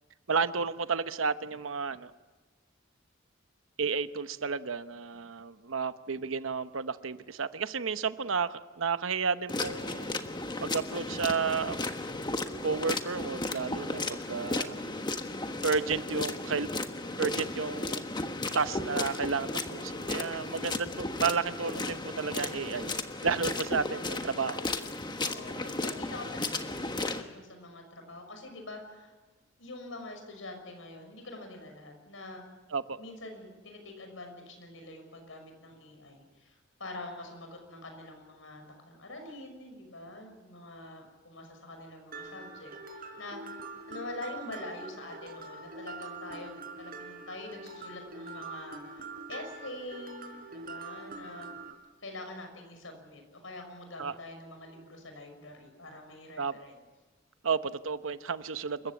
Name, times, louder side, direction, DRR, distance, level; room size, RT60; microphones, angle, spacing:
voice 1, 0.3-2.1 3.8-10.3 10.6-11.8 12.6-14.8 15.6-16.7 17.2-18.0 18.5-23.0 23.2-24.6 32.7-33.0 54.0-54.1 56.4-56.6 57.4-58.9, right 5 dB, 80° right, 12 dB, 0.9 m, -32 dB
sound 1, 9.5-27.2, left 2 dB, 20° left, 1.4 m, -35 dB
voice 2, 19.7-20.2 25.2-29.1 29.6-32.5 33.0-43.4 43.9-51.5 52.0-56.8, left 2 dB, 75° left, 5 dB, 6.0 m, -45 dB
Mallet percussion, 42.1-51.7, right 3 dB, 50° right, 4.0 m, -44 dB
28.5 x 15.0 x 8.5 m, 1.3 s
head